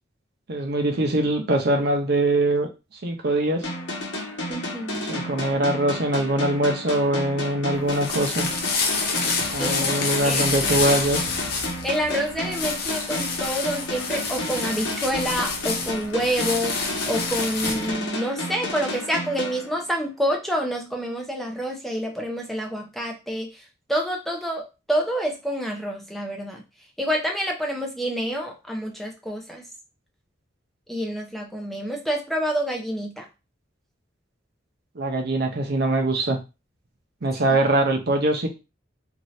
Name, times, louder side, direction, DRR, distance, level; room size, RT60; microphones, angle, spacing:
voice 1, 0.5-2.7 3.0-3.7 5.0-8.5 9.5-11.3 34.9-36.4 37.2-38.5, right 2 dB, 55° right, 3 dB, 0.7 m, -23 dB
sound 1, 3.6-20.2, left 1 dB, 85° left, 1.1 m, -32 dB
voice 2, 4.5-5.2 9.6-10.5 11.8-23.5 23.9-26.6 27.0-29.6 30.9-33.3, equal, ahead, 1 dB, 0.5 m, -28 dB
sound 2, 7.7-17.9, left 4 dB, 55° left, 0.7 m, -28 dB
2.7 x 2.5 x 3.1 m, 0.27 s
head